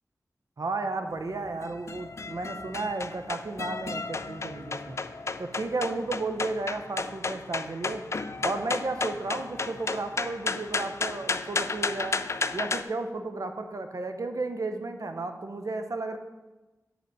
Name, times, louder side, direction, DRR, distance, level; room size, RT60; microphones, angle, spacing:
voice 1, 0.6-5.0 5.4-8.0 8.4-12.2 12.5-16.2, right 3 dB, 65° right, 7 dB, 0.7 m, -33 dB
sound 1, 1.1-12.8, left 4 dB, 50° left, 0.3 m, -33 dB
7.8 x 5.0 x 4.6 m, 1.1 s
wide cardioid pair, 75°, 6 cm